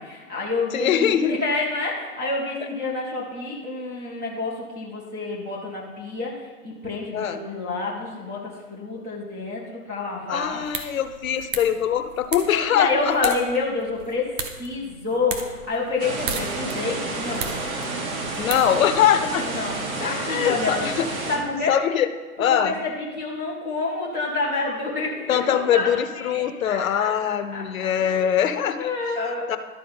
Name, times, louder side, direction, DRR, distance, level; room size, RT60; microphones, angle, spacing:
voice 1, 0.0-10.6 12.5-14.3 14.6-17.5 19.4-20.9 21.3-21.8 22.4-27.6 28.0-28.5 28.7-29.5, left 3 dB, 5° right, -7 dB, 0.4 m, -28 dB
voice 2, 0.7-1.4 7.1-7.4 10.3-13.3 18.4-19.5 20.0-21.1 21.7-22.1 22.4-22.8 25.3-28.9 29.5-29.6, left 9 dB, 60° left, 10 dB, 0.8 m, -22 dB
sound 1, 10.4-19.3, right 5 dB, 35° right, 0.9 m, -36 dB
sound 2, 16.0-21.4, right 2 dB, 65° right, 1.9 m, -30 dB
12.0 x 4.2 x 5.5 m, 1.4 s
hypercardioid pair, 130°, 46 cm